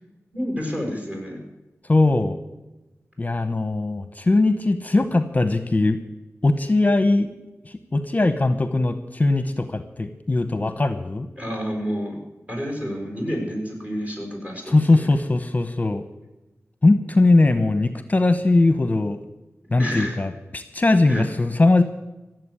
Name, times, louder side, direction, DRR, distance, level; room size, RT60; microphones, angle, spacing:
voice 1, 0.3-1.4 11.4-12.1 12.5-15.1 19.8-20.2 21.1-21.3, equal, 25° right, 1 dB, 6.6 m, -29 dB
voice 2, 1.8-2.4 3.2-6.0 6.4-7.3 7.6-11.3 14.7-16.0 16.8-19.2 19.7-21.8, left 2 dB, 30° left, 11 dB, 0.9 m, -20 dB
16.0 x 7.8 x 9.8 m, 1.0 s
wide cardioid pair, 75°, 5 cm